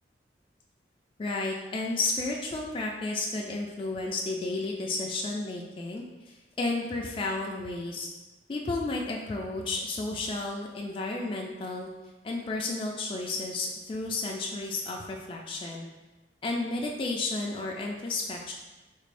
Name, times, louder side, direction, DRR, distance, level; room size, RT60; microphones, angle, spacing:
voice 1, 1.2-8.1 8.5-11.9 12.2-15.9 16.4-18.5, left 2 dB, 30° left, -1 dB, 0.3 m, -32 dB
3.7 x 2.5 x 3.2 m, 1.1 s
head